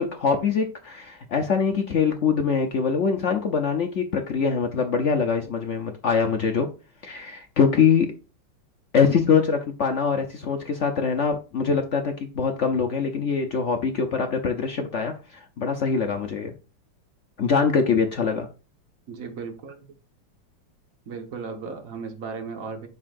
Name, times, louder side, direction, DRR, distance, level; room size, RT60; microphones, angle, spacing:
voice 1, 0.0-6.7 7.0-8.1 8.9-16.5 17.4-18.5, left 6 dB, 90° left, 0.6 m, -23 dB
voice 2, 19.1-19.9 21.1-22.9, right 5 dB, 45° right, 1.6 m, -35 dB
11.0 x 5.6 x 2.6 m
omnidirectional pair, 2.3 m